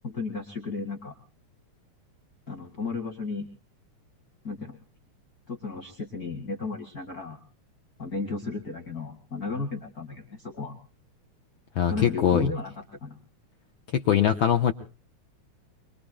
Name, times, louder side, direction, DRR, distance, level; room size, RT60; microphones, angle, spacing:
voice 1, 0.0-1.1 2.5-3.5 4.4-4.8 5.5-7.4 8.0-10.8 11.9-12.7 13.0-13.2, left 4 dB, 35° left, 1 dB, 2.3 m, -34 dB
voice 2, 11.8-12.5 13.9-14.7, left 9 dB, 70° left, 7 dB, 1.2 m, -22 dB
25.0 x 23.0 x 2.2 m, 0.36 s
omnidirectional pair, 3.3 m